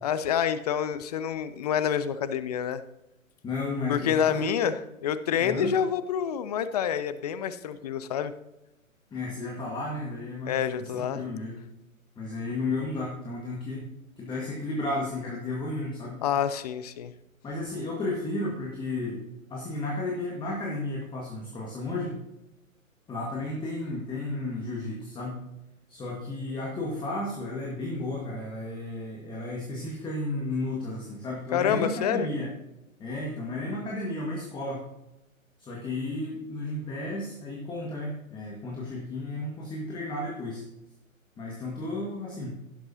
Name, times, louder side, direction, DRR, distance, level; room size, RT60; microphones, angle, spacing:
voice 1, 0.0-2.8 3.9-8.3 10.5-11.2 16.2-17.1 31.5-32.3, left 8 dB, 30° left, 13 dB, 0.5 m, -27 dB
voice 2, 3.4-4.7 5.4-5.7 9.1-11.6 12.2-13.9 14.2-16.2 17.4-19.2 19.5-22.2 23.1-25.5 25.9-32.5 33.0-34.8 35.6-40.6 41.4-42.5, left 2 dB, 10° left, -2 dB, 1.7 m, -33 dB
16.5 x 7.7 x 2.8 m, 0.93 s
figure-of-eight pair, 125°, 41 cm